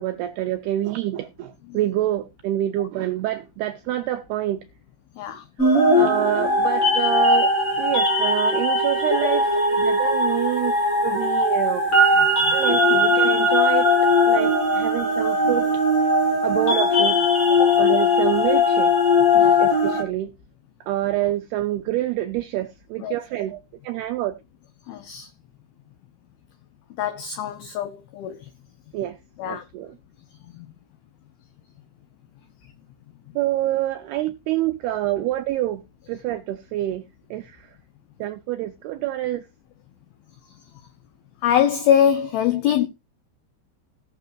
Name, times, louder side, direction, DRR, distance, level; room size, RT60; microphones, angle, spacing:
voice 1, 0.0-4.7 5.9-10.7 11.0-11.9 12.5-13.9 14.2-15.8 16.4-17.2 17.8-18.9 19.6-20.3 20.8-24.4 28.9-29.2 29.4-30.0 33.4-35.8 36.1-37.8 38.2-39.5, right 14 dB, 90° right, 2.3 m, -27 dB
sound 1, 5.6-20.0, left 2 dB, 35° left, 1.4 m, -19 dB
voice 2, 24.9-25.3 27.0-28.5 29.4-29.6 30.4-30.7 41.4-42.9, left 9 dB, 90° left, 2.1 m, -23 dB
17.5 x 6.8 x 2.5 m
omnidirectional pair, 5.4 m